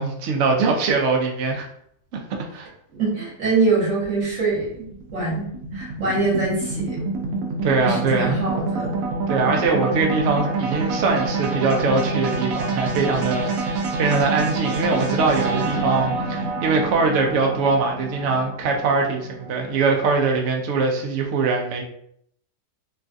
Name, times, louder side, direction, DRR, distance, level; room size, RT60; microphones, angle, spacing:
voice 1, 0.0-1.7 2.1-2.2 2.5-2.7 7.6-8.4 9.3-21.8, right 4 dB, 85° right, 1 dB, 0.6 m, -22 dB
voice 2, 3.0-4.8 5.1-5.5 5.7-7.0 7.8-9.0, right 3 dB, 50° right, -5 dB, 1.3 m, -23 dB
sound 1, 4.0-20.4, right 3 dB, 65° right, 0.9 m, -27 dB
3.1 x 2.3 x 2.5 m, 0.68 s
omnidirectional pair, 1.8 m